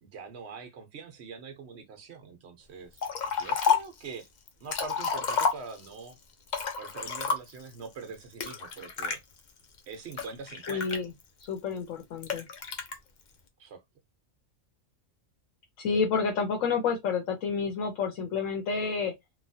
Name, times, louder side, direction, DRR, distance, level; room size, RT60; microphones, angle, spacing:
voice 1, 0.0-4.3 4.6-6.2 6.8-9.2 9.9-11.0 13.6-13.8, right 5 dB, 60° right, 1.0 m, -43 dB
Liquid, 3.0-4.0 4.5-6.0 6.5-7.7 8.4-9.2 9.8-11.4 12.2-12.9, left 6 dB, 55° left, 0.5 m, -30 dB
voice 2, 10.7-11.1 11.5-12.4 15.8-19.1, left 5 dB, 75° left, 1.1 m, -29 dB
3.1 x 2.3 x 2.6 m
omnidirectional pair, 1.4 m